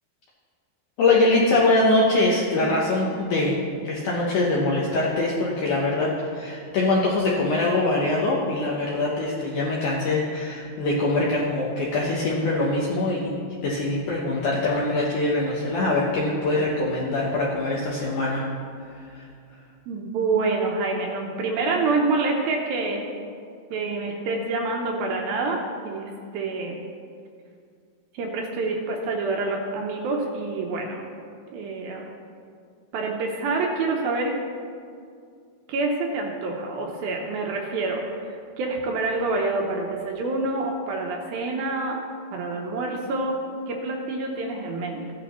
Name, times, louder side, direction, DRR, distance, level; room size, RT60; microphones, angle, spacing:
voice 1, 1.0-13.3 13.6-18.5 18.9-19.3, left 2 dB, 70° left, -4 dB, 1.9 m, -23 dB
voice 2, 19.9-23.1 23.7-25.6 25.8-26.8 28.1-31.1 31.5-32.1 32.9-34.3 35.7-42.0 42.3-43.3 43.7-45.1, right 3 dB, 75° right, 0 dB, 2.4 m, -27 dB
15.5 x 10.5 x 3.1 m, 2.3 s
omnidirectional pair, 4.9 m